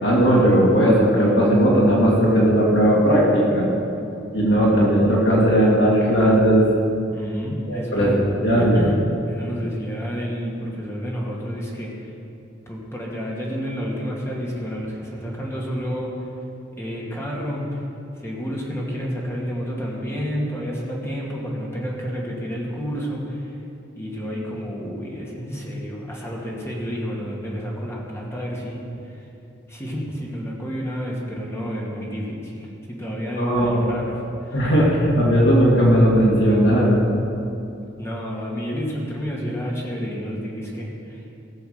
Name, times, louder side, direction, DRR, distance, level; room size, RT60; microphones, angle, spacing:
voice 1, 0.0-3.7 4.3-6.7 7.7-8.9 33.4-33.9 34.5-37.1, equal, 65° left, -4 dB, 2.2 m, -17 dB
voice 2, 7.1-8.2 8.6-12.1 12.7-16.1 16.7-17.8 18.2-23.6 23.9-29.2 29.7-34.7 38.0-41.2, equal, 15° left, -3 dB, 2.3 m, -30 dB
17.5 x 6.9 x 6.7 m, 2.7 s
head